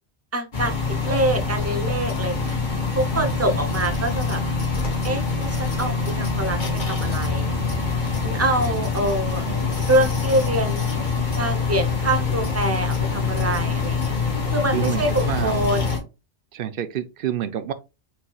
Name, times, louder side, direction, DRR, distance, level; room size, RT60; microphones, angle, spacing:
voice 1, 0.3-2.6 2.9-4.4 5.0-7.5 8.2-9.4 9.9-11.0 11.4-14.1 14.5-15.9, right 1 dB, 15° right, 0.6 m, -25 dB
sound 1, 0.5-16.0, left 4 dB, 50° left, 1.3 m, -25 dB
voice 2, 3.1-3.6 9.5-9.7 10.0-10.3 14.7-15.6 16.5-17.7, right 10 dB, 60° right, 0.7 m, -29 dB
4.5 x 4.0 x 2.3 m
omnidirectional pair, 1.1 m